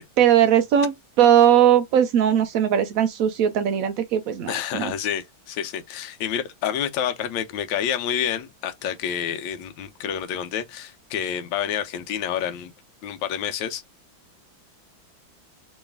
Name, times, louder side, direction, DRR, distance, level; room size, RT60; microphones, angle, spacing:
voice 1, 0.2-4.9, right 9 dB, 90° right, 0.7 m, -19 dB
voice 2, 4.5-12.7 13.0-13.8, left 9 dB, 80° left, 1.3 m, -28 dB
3.1 x 3.1 x 3.4 m
omnidirectional pair, 2.1 m